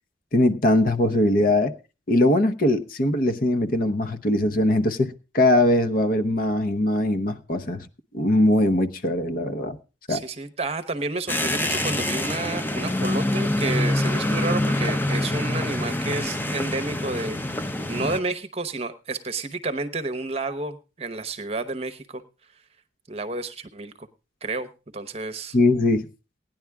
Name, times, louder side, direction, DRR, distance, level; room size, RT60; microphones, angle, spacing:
voice 1, 0.3-1.7 2.1-7.9 8.1-9.8 10.1-10.2 18.0-18.1 25.5-26.1, left 1 dB, 50° left, 0.9 m, -21 dB
voice 2, 10.1-22.2 23.1-24.1 24.4-25.6, right 3 dB, 35° right, 0.9 m, -31 dB
sound 1, 11.3-18.2, left 1 dB, 10° left, 0.6 m, -25 dB
17.5 x 10.5 x 3.5 m
head